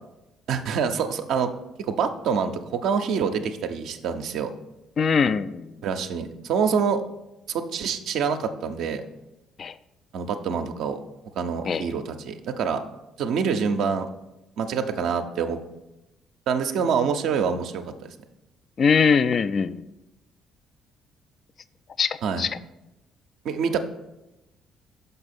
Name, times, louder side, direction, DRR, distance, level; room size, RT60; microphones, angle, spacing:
voice 1, 0.5-1.5 1.8-4.5 5.8-7.0 7.5-9.1 10.1-11.0 11.4-12.8 13.2-14.1 14.6-15.6 16.5-18.1 22.2-22.5 23.4-23.8, right 6 dB, 65° right, 6 dB, 0.5 m, -26 dB
voice 2, 5.0-5.6 9.6-9.7 11.7-11.8 18.8-19.8 22.0-22.5, left 5 dB, 50° left, 15 dB, 0.3 m, -22 dB
6.1 x 5.4 x 4.2 m, 0.94 s
hypercardioid pair, 50°, 0 cm